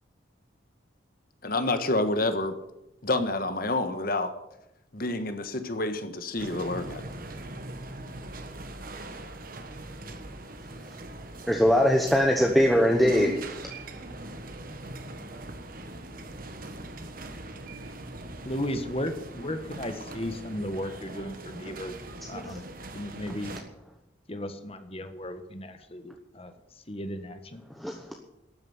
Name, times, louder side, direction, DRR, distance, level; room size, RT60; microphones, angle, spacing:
voice 1, 1.4-2.5 3.0-4.3 4.9-7.0, left 2 dB, 45° left, 9 dB, 1.4 m, -28 dB
sound 1, 6.4-23.6, right 1 dB, 45° right, 1.5 m, -41 dB
voice 2, 11.5-13.4 27.8-28.2, equal, ahead, 1 dB, 1.0 m, -21 dB
voice 3, 18.4-22.0 22.3-22.7 22.9-23.5 24.3-26.5 26.9-27.6, left 1 dB, 30° left, 9 dB, 1.4 m, -35 dB
13.0 x 9.3 x 9.5 m, 0.89 s
head